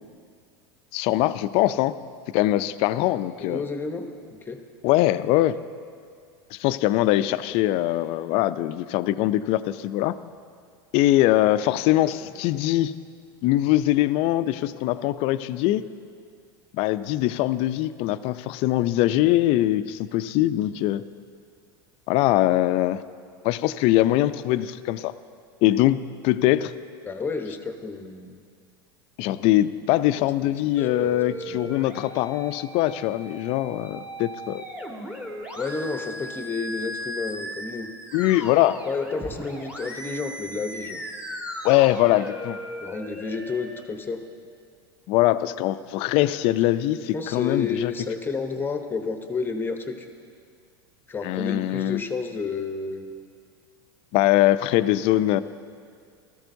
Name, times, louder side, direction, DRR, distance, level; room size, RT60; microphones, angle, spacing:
voice 1, 0.9-2.0 2.3-3.6 4.8-5.6 6.5-10.2 10.9-13.0 13.4-15.9 16.7-21.0 22.1-23.0 23.4-25.1 25.6-26.7 29.2-34.6 38.1-38.8 41.6-42.6 45.1-47.9 51.2-52.0 54.1-55.4, left 15 dB, 55° left, 14 dB, 0.4 m, -22 dB
voice 2, 3.4-4.2 4.4-4.6 12.0-12.3 27.0-28.4 30.2-31.8 35.6-37.9 38.8-41.0 42.8-44.2 47.1-50.1 51.1-53.0, left 4 dB, 15° left, 6 dB, 0.9 m, -31 dB
sound 1, 30.8-43.8, equal, 10° right, 1.6 m, -37 dB
16.5 x 13.5 x 2.7 m, 2.2 s
supercardioid pair, 110°, 12 cm